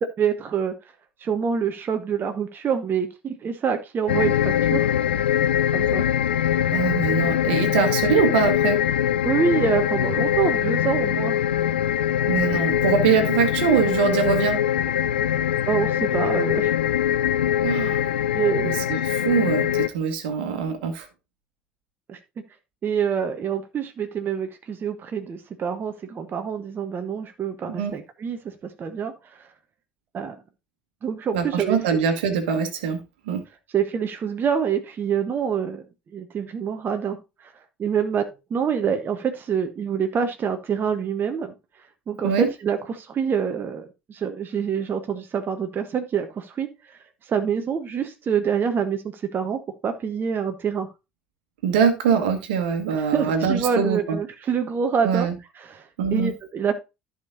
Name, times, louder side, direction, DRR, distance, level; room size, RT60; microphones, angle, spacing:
voice 1, 0.2-0.7 1.2-5.0 5.7-6.0 9.2-11.4 15.7-16.7 18.3-18.9 22.1-22.2 22.8-29.5 30.1-30.4 31.0-31.8 33.7-35.8 36.1-37.5 37.8-41.5 42.1-47.0 47.3-50.9 53.0-55.3 55.5-56.7, right 7 dB, 40° right, 1.1 m, -26 dB
sound 1, 4.1-19.9, left 10 dB, 80° left, 0.4 m, -23 dB
voice 2, 6.7-8.8 12.3-14.6 17.6-18.0 18.6-21.1 27.7-27.9 31.3-33.0 33.3-33.4 42.2-42.5 51.6-54.2 55.0-55.3 56.0-56.3, right 6 dB, 70° right, 1.5 m, -23 dB
14.0 x 5.2 x 2.7 m
figure-of-eight pair, 60°, 6 cm